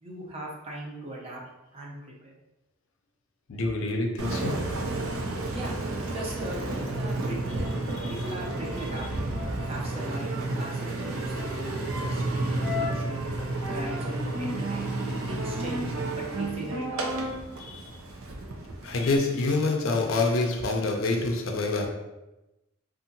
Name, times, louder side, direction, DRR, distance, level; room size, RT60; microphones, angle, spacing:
voice 1, 0.0-1.4 1.7-2.0 2.2-2.4 5.5-5.8 6.1-13.2 13.7-14.8 15.3-17.1, right 1 dB, 30° right, -3 dB, 0.5 m, -39 dB
voice 2, 3.5-4.7 7.9-8.1 17.6-17.9 18.8-21.9, left 3 dB, 65° left, 2 dB, 0.5 m, -27 dB
Engine, 4.2-19.2, right 2 dB, 85° right, 0.5 m, -31 dB
2.7 x 2.4 x 2.6 m, 1.0 s
head